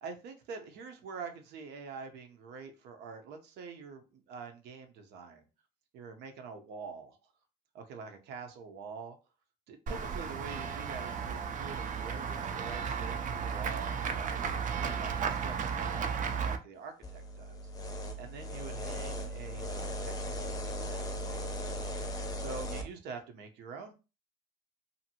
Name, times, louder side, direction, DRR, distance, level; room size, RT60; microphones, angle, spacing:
voice 1, 0.0-5.4 5.9-7.2 7.7-9.2 9.7-17.6 18.2-21.6 22.4-23.9, right 5 dB, 85° right, 5 dB, 0.7 m, -46 dB
Run / Walk footsteps / Bell, 9.9-16.6, right 6 dB, 50° right, 0.5 m, -34 dB
sound 1, 17.0-22.8, equal, 20° left, 0.6 m, -38 dB
2.7 x 2.6 x 2.8 m, 0.30 s
cardioid pair, 110°, 17 cm